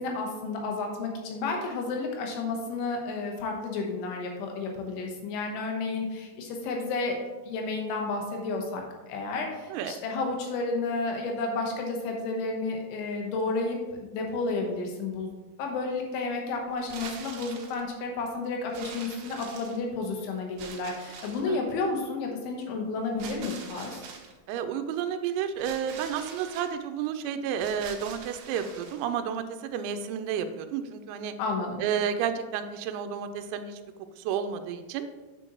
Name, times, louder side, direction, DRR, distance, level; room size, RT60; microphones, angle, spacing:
voice 1, 0.0-7.2 7.5-15.3 15.6-24.0 31.4-31.8, left 3 dB, 75° left, 1 dB, 3.4 m, -31 dB
sound 1, 16.8-17.8 18.7-20.0 20.6-21.5 23.2-24.3 25.6-26.7 27.5-29.1, right 6 dB, 70° right, 3.2 m, -44 dB
voice 2, 24.5-31.3 31.8-33.8 34.2-35.1, right 8 dB, 90° right, 8 dB, 3.3 m, -31 dB
8.9 x 7.7 x 3.0 m, 1.2 s
omnidirectional pair, 5.9 m